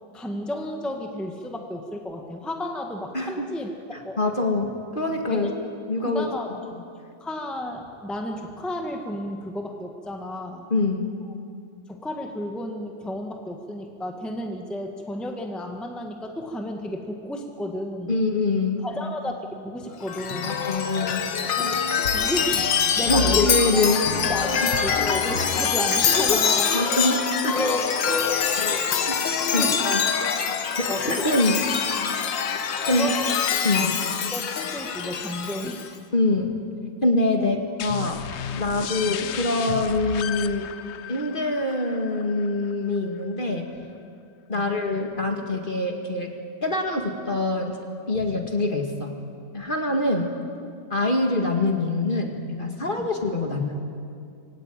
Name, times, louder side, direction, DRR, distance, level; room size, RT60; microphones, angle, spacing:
voice 1, 0.1-4.2 5.3-5.7 6.0-6.5 7.2-10.7 11.9-18.2 18.8-19.3 19.6-20.6 21.6-21.8 22.1-23.9 24.2-26.7 27.5-28.3 28.7-29.0 29.6-30.1 30.9-31.3 32.8-33.4 33.7-33.9 34.3-35.9 37.4-37.5 44.5-44.7 51.0-51.1 53.0-53.1, left 1 dB, ahead, 3 dB, 1.5 m, -32 dB
voice 2, 4.2-5.5 5.9-6.3 10.7-11.1 18.1-18.8 20.4-21.3 23.1-24.0 26.1-26.4 26.7-27.6 28.6-29.2 29.5-30.0 30.8-31.6 32.9-33.1 33.6-33.9 36.1-36.6 37.0-38.2 38.5-40.7 41.1-43.7 44.5-46.3 46.6-47.8 48.1-49.1 49.5-50.3 50.9-53.8, left 2 dB, 30° left, 2 dB, 2.0 m, -24 dB
Chime, 20.0-35.9, left 7 dB, 85° left, 2.0 m, -24 dB
sound 1, 37.8-43.2, left 9 dB, 65° left, 0.6 m, -34 dB
24.5 x 17.0 x 9.1 m, 2.4 s
omnidirectional pair, 2.0 m